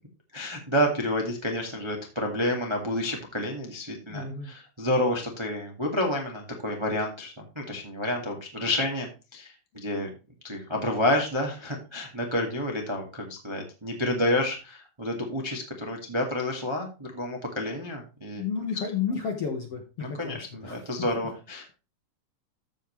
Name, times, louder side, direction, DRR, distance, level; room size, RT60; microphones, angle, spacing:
voice 1, 0.3-10.1 10.4-18.4 20.0-21.7, left 1 dB, 20° right, 0 dB, 0.7 m, -29 dB
voice 2, 4.1-4.5 18.3-20.8, left 6 dB, 60° left, 3 dB, 1.7 m, -32 dB
14.5 x 5.4 x 3.2 m, 0.31 s
omnidirectional pair, 4.3 m